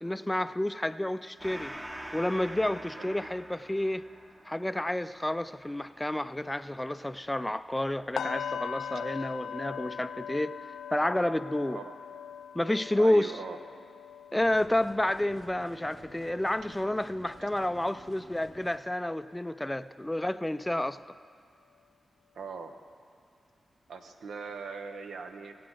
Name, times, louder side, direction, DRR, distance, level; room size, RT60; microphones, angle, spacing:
voice 1, 0.0-1.7 2.1-4.0 4.4-10.5 10.9-11.8 12.5-13.3 14.3-21.0, left 1 dB, 15° left, 13 dB, 0.4 m, -30 dB
Gong, 1.4-8.4, right 1 dB, 20° right, 0.9 m, -46 dB
voice 2, 2.9-3.3 11.7-12.0 12.9-13.6 22.3-22.8 23.9-25.5, right 5 dB, 85° right, 6 dB, 0.7 m, -41 dB
sound 1, 8.2-18.1 18.4-18.7 19.1-19.3, left 8 dB, 85° left, 0.4 m, -41 dB
sound 2, 14.4-18.8, right 2 dB, 45° right, 1.3 m, -53 dB
22.5 x 7.6 x 3.9 m, 2.3 s
cardioid pair, 50°, 0 cm